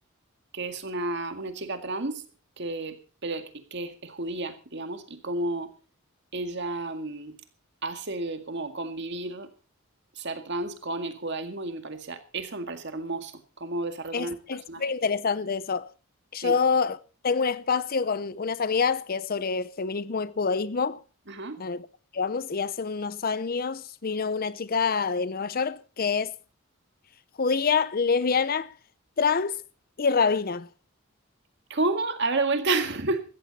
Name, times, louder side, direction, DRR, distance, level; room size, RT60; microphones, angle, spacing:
voice 1, 0.5-2.2 2.6-3.0 3.2-5.7 6.3-7.4 7.8-9.5 10.2-14.4 14.7-14.8 16.4-16.6 21.3-21.6 31.7-33.2, right 2 dB, 55° right, 2.0 m, -31 dB
voice 2, 14.1-15.9 16.3-17.0 17.2-21.0 21.6-21.8 22.1-26.3 27.4-28.7 29.2-29.6 30.0-30.7, left 5 dB, 45° left, 0.6 m, -26 dB
15.5 x 14.0 x 4.2 m
head